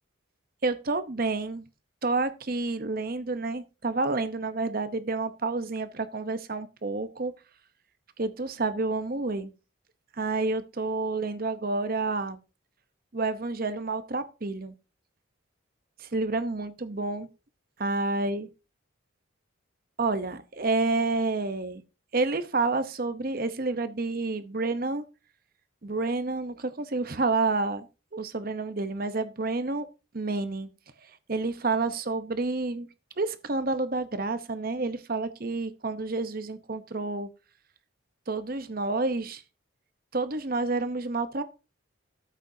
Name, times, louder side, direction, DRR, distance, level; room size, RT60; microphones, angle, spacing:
voice 1, 0.6-1.6 2.0-7.3 8.2-9.5 10.1-12.4 13.1-14.7 16.0-17.3 17.8-18.5 20.0-21.8 22.1-25.0 25.8-27.9 28.1-29.9 30.1-30.7 31.3-32.9 33.2-37.3 38.3-39.4 40.1-41.4, right 3 dB, 45° right, 0.9 m, -29 dB
12.5 x 8.4 x 2.7 m
head